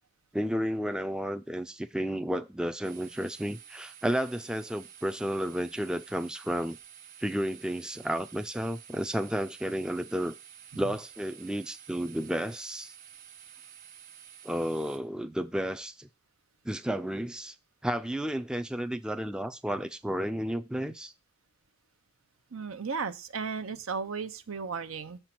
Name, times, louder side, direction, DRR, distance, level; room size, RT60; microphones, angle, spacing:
voice 1, 0.3-6.8 7.2-10.4 10.7-12.9 14.4-16.1 16.6-17.5 17.8-21.1, equal, 5° right, 0.4 m, -32 dB
sound 1, 2.8-15.0, right 9 dB, 40° right, 1.2 m, -51 dB
voice 2, 22.5-25.2, right 5 dB, 85° right, 0.7 m, -35 dB
7.0 x 4.5 x 5.9 m
head